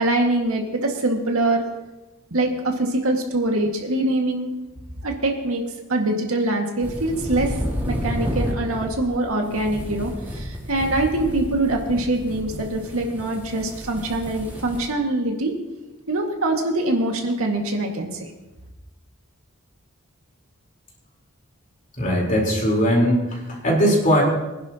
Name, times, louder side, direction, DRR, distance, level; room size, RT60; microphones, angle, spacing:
voice 1, 0.0-1.6 2.3-4.5 5.0-5.6 5.9-7.6 7.9-15.5 16.1-18.3, right 2 dB, 85° right, 1 dB, 2.0 m, -23 dB
sound 1, 6.8-14.9, equal, 10° right, 3.2 m, -31 dB
voice 2, 22.0-24.2, equal, 40° left, -2 dB, 4.2 m, -19 dB
23.5 x 10.5 x 3.0 m, 1.0 s
head